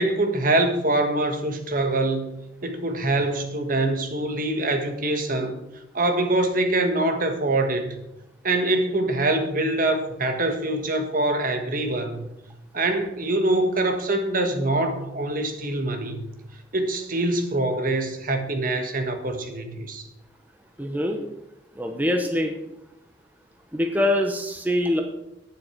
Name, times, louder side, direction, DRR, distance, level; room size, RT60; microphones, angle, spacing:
voice 1, 0.0-2.4 2.6-5.6 5.9-8.0 8.4-12.3 12.7-16.3 16.7-20.0, right 2 dB, 50° right, 6 dB, 1.5 m, -24 dB
voice 2, 20.8-21.2 21.8-22.5 23.7-25.0, left 1 dB, 10° right, 4 dB, 0.8 m, -24 dB
11.5 x 9.5 x 4.5 m, 0.87 s
head